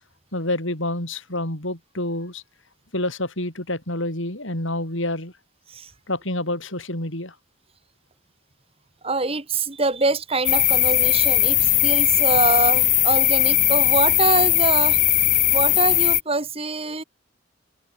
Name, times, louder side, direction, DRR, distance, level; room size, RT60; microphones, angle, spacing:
voice 1, 0.3-2.4 2.9-5.3 6.1-7.3, left 1 dB, 65° left, 6.6 m, -28 dB
voice 2, 9.0-15.0 15.5-17.0, right 3 dB, 25° right, 2.2 m, -24 dB
sound 1, 10.4-16.2, left 14 dB, 35° left, 2.0 m, -18 dB
head